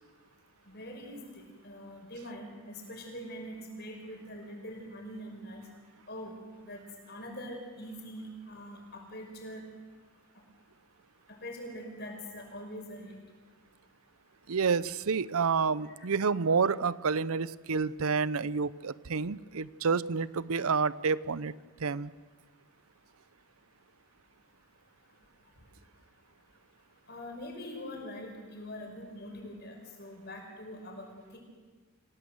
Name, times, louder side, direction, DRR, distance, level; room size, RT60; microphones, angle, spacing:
voice 1, 0.6-5.7 6.1-6.3 6.6-9.6 11.3-13.2 15.8-16.1 25.6-25.7 27.1-31.4, equal, 45° left, 1 dB, 5.8 m, -43 dB
voice 2, 14.5-21.5 21.8-22.1, right 5 dB, 75° right, 19 dB, 0.6 m, -29 dB
27.0 x 17.5 x 8.0 m, 1.4 s
head